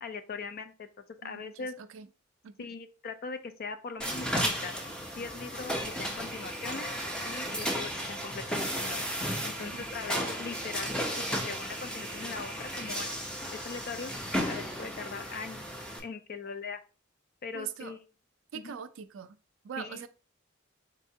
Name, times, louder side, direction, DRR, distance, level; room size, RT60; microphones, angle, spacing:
voice 1, 0.0-1.8 2.6-4.7 5.1-9.1 9.4-14.1 14.5-15.6 16.0-16.8 17.4-18.0 18.5-18.8 19.8-20.0, left 5 dB, 50° left, 0.4 m, -41 dB
voice 2, 1.2-2.1 2.4-2.6 9.6-9.9 17.5-18.0 18.5-19.4 19.6-20.1, right 8 dB, 70° right, 0.4 m, -42 dB
sound 1, 4.0-16.0, equal, 5° left, 0.6 m, -34 dB
Race car auto racing / Accelerating revving vroom, 4.9-9.2 9.8-9.9 11.1-11.3, equal, 65° left, 1.4 m, -55 dB
4.0 x 3.4 x 2.7 m
head